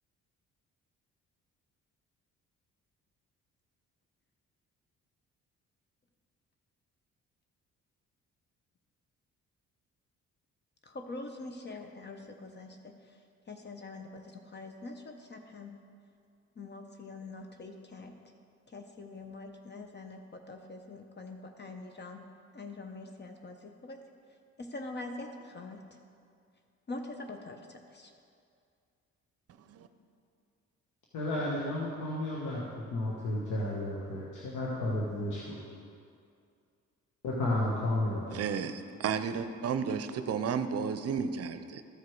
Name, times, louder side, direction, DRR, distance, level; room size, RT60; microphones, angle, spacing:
voice 1, 10.9-13.0 13.5-15.8 16.6-18.1 18.7-22.3 22.5-24.0 24.6-25.8 26.9-28.1, left 2 dB, 35° left, 5 dB, 0.7 m, -44 dB
voice 2, 31.1-35.6 37.2-38.4, left 1 dB, 80° left, -5 dB, 1.3 m, -32 dB
voice 3, 38.3-41.8, right 6 dB, 55° right, 10 dB, 0.6 m, -33 dB
13.5 x 4.8 x 4.6 m, 2.3 s
cardioid pair, 90°, 30 cm